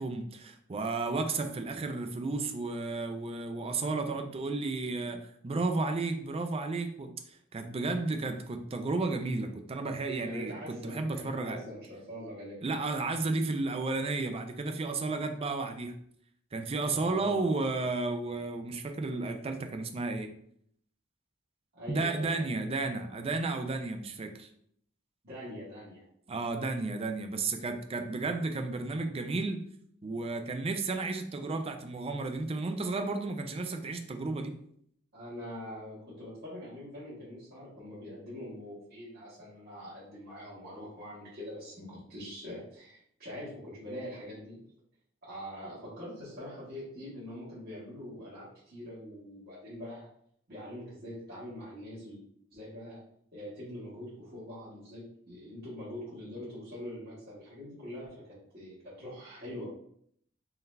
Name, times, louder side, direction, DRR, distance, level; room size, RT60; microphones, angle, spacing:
voice 1, 0.0-7.1 7.5-11.6 12.6-15.9 16.5-20.3 21.9-24.5 26.3-29.6 30.0-34.5, right 3 dB, 30° right, 6 dB, 0.4 m, -33 dB
voice 2, 10.2-12.6 16.8-17.5 21.7-22.9 25.2-26.0 35.1-44.6 45.2-50.1 50.5-52.2 52.5-53.0 53.3-59.6, left 1 dB, 50° right, -10 dB, 1.5 m, -43 dB
3.8 x 2.7 x 3.2 m, 0.68 s
head